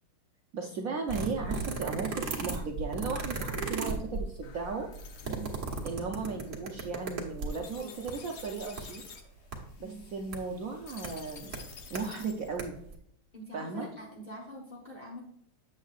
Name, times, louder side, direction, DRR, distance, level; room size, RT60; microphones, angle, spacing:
voice 1, 0.5-4.9 5.8-9.0 9.8-11.5 11.9-12.8 13.5-13.9, right 4 dB, 75° right, 2 dB, 0.7 m, -36 dB
sound 1, 1.1-7.7 8.1-8.2 8.4-8.8 9.5-9.6 10.3-10.4 11.0-11.1 11.5-12.0 12.4-12.6 12.9-13.0, right 4 dB, 45° right, 1.4 m, -35 dB
sound 2, 4.4-12.5, left 5 dB, 60° left, 1.3 m, -51 dB
voice 2, 5.2-5.5 7.8-8.0 9.8-10.0 13.3-15.2, right 1 dB, 35° left, -3 dB, 0.8 m, -44 dB
8.0 x 7.5 x 2.4 m, 0.74 s
omnidirectional pair, 2.3 m